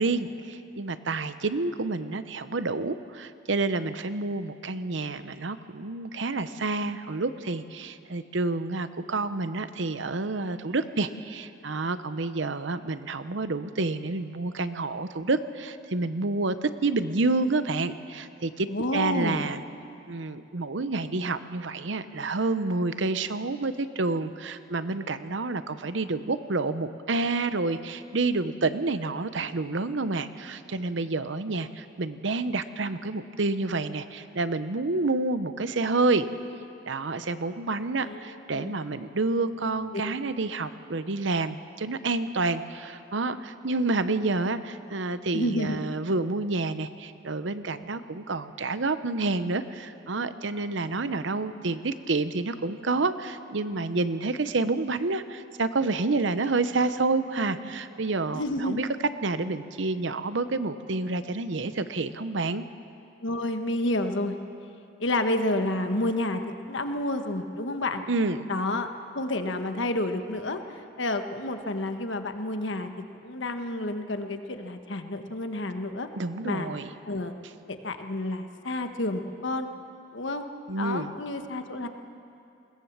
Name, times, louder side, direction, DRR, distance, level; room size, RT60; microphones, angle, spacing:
voice 1, 0.0-19.6 20.1-36.3 36.9-58.9 59.2-62.6 68.1-68.4 76.2-76.9 80.7-81.1, right 3 dB, 70° right, 12 dB, 0.8 m, -29 dB
voice 2, 18.7-19.4 38.0-38.8 39.9-40.0 45.3-45.8 58.3-58.8 63.2-64.4 65.0-68.0 68.5-68.9 69.1-72.9 73.2-76.1 76.4-76.7 77.0-77.3 77.7-79.7 80.1-80.4 80.8-81.9, left 1 dB, 70° left, 7 dB, 1.3 m, -30 dB
21.0 x 19.5 x 7.3 m, 2.6 s
head